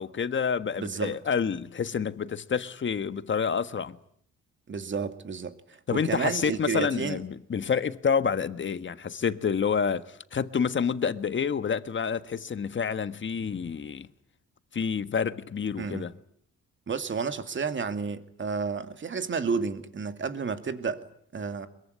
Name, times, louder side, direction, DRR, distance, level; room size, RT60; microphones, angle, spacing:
voice 1, 0.0-4.0 5.9-14.1 14.7-16.1, left 6 dB, 40° left, 1.5 m, -28 dB
voice 2, 0.8-1.2 4.7-5.5 5.9-7.2 15.8-16.1 16.9-21.1 21.3-21.7, right 5 dB, 40° right, 2.4 m, -31 dB
23.0 x 22.5 x 9.7 m
cardioid pair, 90°, 30 cm